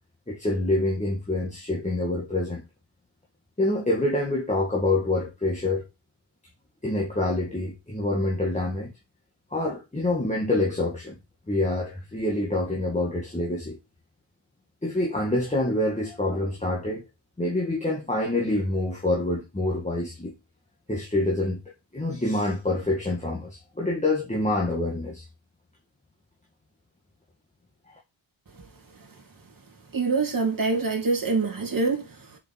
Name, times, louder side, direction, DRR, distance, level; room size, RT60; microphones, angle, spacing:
voice 1, 0.3-2.6 3.6-5.9 6.8-8.9 9.5-11.2 11.5-13.8 14.8-17.0 17.4-20.3 20.9-21.6 21.9-25.2, left 2 dB, 15° left, 1.9 m, -26 dB
voice 2, 29.9-32.1, right 4 dB, 45° right, 2.7 m, -25 dB
7.2 x 5.8 x 4.3 m
wide cardioid pair, 175°, 46 cm